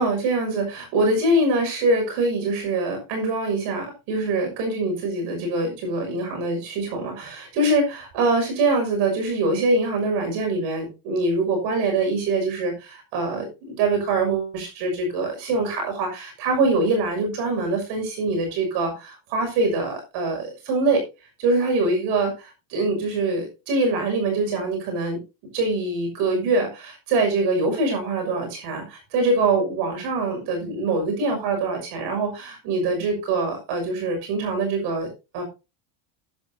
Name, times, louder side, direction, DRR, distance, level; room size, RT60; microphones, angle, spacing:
voice 1, 0.0-21.0 21.4-25.2 25.5-35.4, right 2 dB, 60° right, 2 dB, 6.3 m, -24 dB
14.0 x 10.5 x 2.8 m, 0.28 s
cardioid pair, 175°, 47 cm